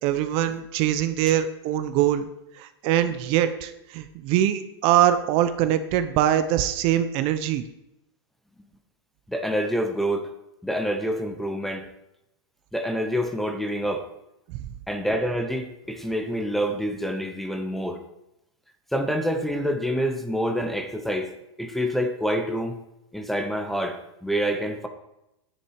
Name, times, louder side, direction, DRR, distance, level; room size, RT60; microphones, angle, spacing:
voice 1, 0.0-2.3 2.6-7.6 14.5-14.6, right 11 dB, 40° right, 10 dB, 0.9 m, -23 dB
voice 2, 9.3-10.3 10.6-11.9 12.7-14.0 14.9-18.0 18.9-21.3 21.6-22.8 23.1-24.9, equal, ahead, 7 dB, 1.0 m, -27 dB
10.5 x 10.0 x 4.8 m, 0.87 s
supercardioid pair, 150°, 14 cm